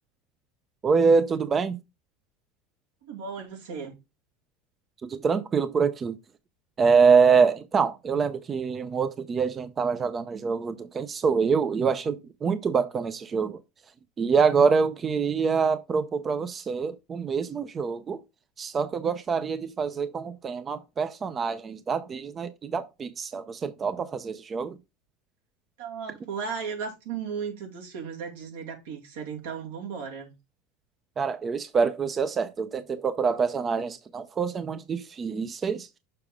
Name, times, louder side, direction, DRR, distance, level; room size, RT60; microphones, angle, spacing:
voice 1, 0.8-1.8 5.0-6.2 6.8-13.6 14.2-18.2 18.6-24.8 31.2-35.9, right 5 dB, 30° right, 0.5 m, -25 dB
voice 2, 3.0-3.9 25.8-30.3, right 6 dB, 85° right, 2.3 m, -35 dB
6.7 x 4.8 x 3.6 m
supercardioid pair, 110°, 0 cm